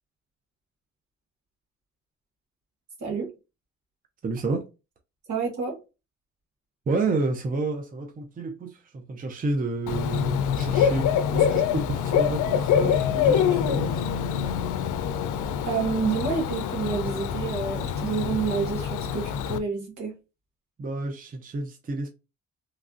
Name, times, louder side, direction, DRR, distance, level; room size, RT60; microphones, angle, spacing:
voice 1, 3.0-3.3 5.3-5.8 15.6-20.1, right 5 dB, 70° right, 1.6 m, -29 dB
voice 2, 4.2-4.6 6.9-11.1 11.3-14.1 20.8-22.1, right 3 dB, 30° right, 0.6 m, -30 dB
Bird / Cricket, 9.9-19.6, left 8 dB, 80° left, 0.5 m, -25 dB
3.2 x 2.3 x 2.4 m
cardioid pair, 90°, 30 cm